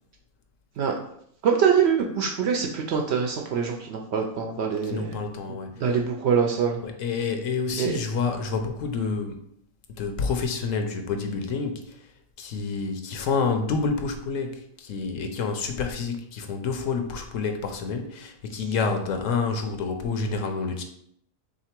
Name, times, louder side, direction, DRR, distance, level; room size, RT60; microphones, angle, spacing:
voice 1, 1.4-5.2 5.8-6.8 7.8-7.9, right 7 dB, 65° right, 1 dB, 0.7 m, -24 dB
voice 2, 4.8-5.8 6.8-9.4 9.9-12.1 12.4-20.8, left 4 dB, 75° left, 5 dB, 0.9 m, -28 dB
3.6 x 2.9 x 4.3 m, 0.69 s
omnidirectional pair, 1.4 m